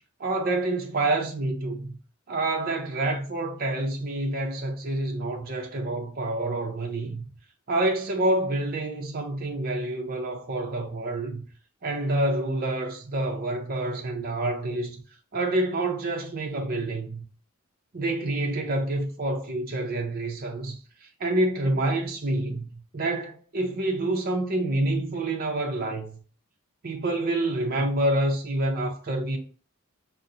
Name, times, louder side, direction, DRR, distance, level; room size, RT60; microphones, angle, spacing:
voice 1, 0.2-2.0 2.3-7.2 7.7-11.4 11.8-15.0 15.3-17.2 17.9-26.2 26.8-29.4, right 2 dB, 45° right, 0.6 m, -27 dB
2.8 x 2.0 x 3.6 m
head